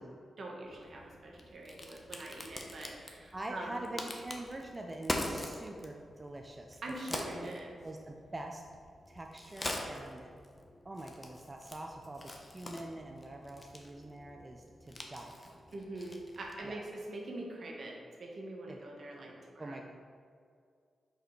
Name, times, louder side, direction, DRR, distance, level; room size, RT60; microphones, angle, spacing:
voice 1, 0.4-3.8 6.8-7.8 15.7-19.8, right 2 dB, 65° right, -1 dB, 1.2 m, -44 dB
Crack, 0.6-16.7, left 1 dB, 35° left, 0.9 m, -44 dB
voice 2, 3.3-6.8 7.1-7.6 7.8-8.6 9.1-10.3 10.8-15.6 16.6-16.8 18.7-18.8 19.6-19.8, right 1 dB, 30° right, 2 dB, 0.5 m, -44 dB
5.4 x 4.0 x 4.5 m, 2.2 s
supercardioid pair, 40°, 0 cm